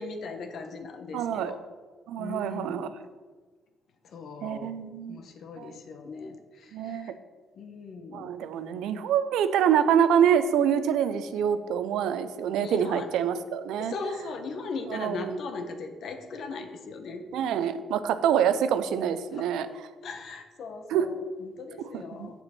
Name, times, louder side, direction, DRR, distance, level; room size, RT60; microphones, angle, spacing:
voice 1, 0.0-1.6 2.2-2.9 4.0-4.8 5.1-7.2 7.6-8.3 12.6-13.1 13.8-17.3 19.3-19.5 20.0-22.4, left 3 dB, 65° left, 6 dB, 0.9 m, -38 dB
voice 2, 1.1-1.5 2.1-2.9 4.4-5.2 5.6-5.7 6.7-7.1 8.1-13.9 14.9-15.4 17.3-19.7 20.9-21.0 22.2-22.3, right 8 dB, 85° right, 12 dB, 0.5 m, -26 dB
7.1 x 6.9 x 4.3 m, 1.4 s
cardioid pair, 90°, 0 cm